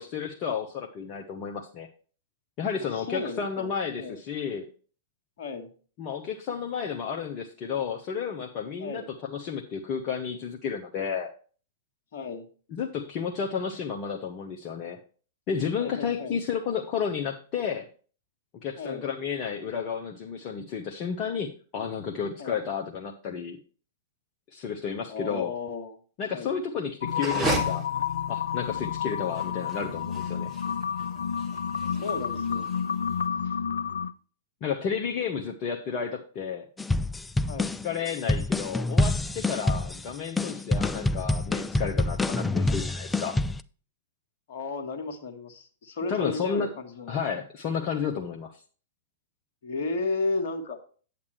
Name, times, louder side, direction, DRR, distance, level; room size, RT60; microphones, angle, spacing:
voice 1, 0.0-1.9 2.6-4.7 6.0-11.3 12.7-15.0 15.5-17.9 18.6-23.6 24.5-25.5 26.2-27.9 28.3-30.5 34.6-36.7 37.8-43.4 46.1-46.7 47.1-48.6, left 6 dB, 35° left, 2 dB, 0.9 m, -32 dB
voice 2, 3.0-4.2 5.4-5.7 8.8-9.1 12.1-12.5 15.8-16.3 18.8-19.0 22.4-22.6 25.1-25.9 26.3-26.5 31.9-32.7 33.4-33.5 37.5-37.7 44.5-47.1 49.6-50.8, left 3 dB, 55° left, 6 dB, 1.5 m, -34 dB
sound 1, 27.0-34.1, left 7 dB, 70° left, 0.4 m, -30 dB
sound 2, 27.1-33.2, right 3 dB, 15° right, 2.2 m, -35 dB
sound 3, 36.8-43.6, left 2 dB, 10° left, 0.4 m, -27 dB
8.5 x 8.3 x 3.1 m, 0.40 s
figure-of-eight pair, 105°, 0 cm